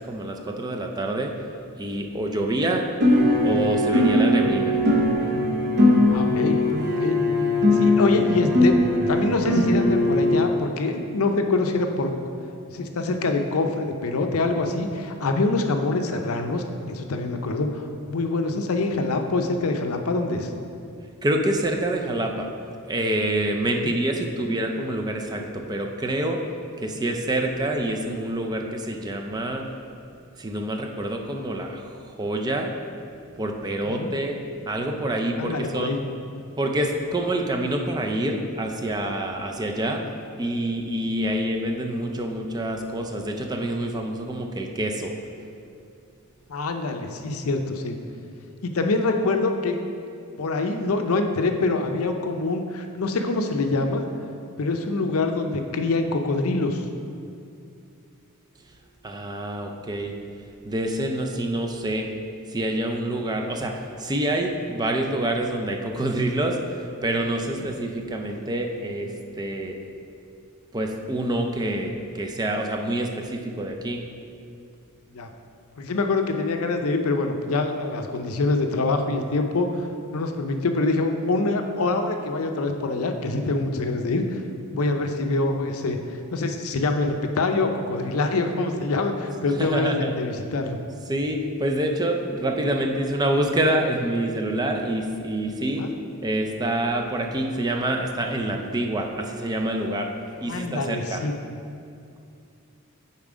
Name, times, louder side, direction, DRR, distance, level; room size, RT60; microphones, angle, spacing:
voice 1, 0.0-1.3 1.8-2.9 3.4-4.8 21.2-22.5 22.9-26.4 26.8-29.7 30.4-32.7 33.4-34.4 34.7-36.0 36.6-40.1 40.4-45.1 59.0-60.1 60.6-62.1 62.5-69.8 70.7-74.0 89.6-90.1 91.1-95.9 96.2-100.1 100.4-101.2, right 1 dB, 20° right, 2 dB, 0.5 m, -27 dB
sound 1, 3.0-10.4, left 1 dB, 50° right, 0.9 m, -20 dB
voice 2, 6.1-6.6 7.0-7.2 7.7-12.1 12.7-20.5 23.8-23.9 33.8-34.1 35.4-36.0 46.5-48.0 48.6-49.8 50.4-54.0 54.6-56.8 67.6-67.7 75.1-75.3 75.8-84.4 84.7-86.0 86.3-90.8 95.8-95.9 100.5-101.3, left 3 dB, 75° left, 5 dB, 0.6 m, -25 dB
7.2 x 4.3 x 5.0 m, 2.5 s
head